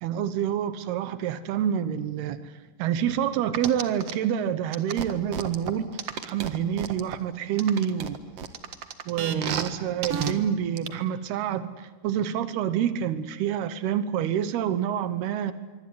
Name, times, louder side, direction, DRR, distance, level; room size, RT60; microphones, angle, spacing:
voice 1, 0.0-2.5 2.8-5.9 6.2-8.2 9.1-15.5, right 9 dB, 90° right, 13 dB, 3.2 m, -27 dB
sound 1, 3.5-4.1 4.7-7.2 7.6-9.7 10.0-10.3 10.8-10.9, right 7 dB, 50° right, 2.2 m, -31 dB
26.0 x 24.0 x 9.4 m, 1.2 s
omnidirectional pair, 4.4 m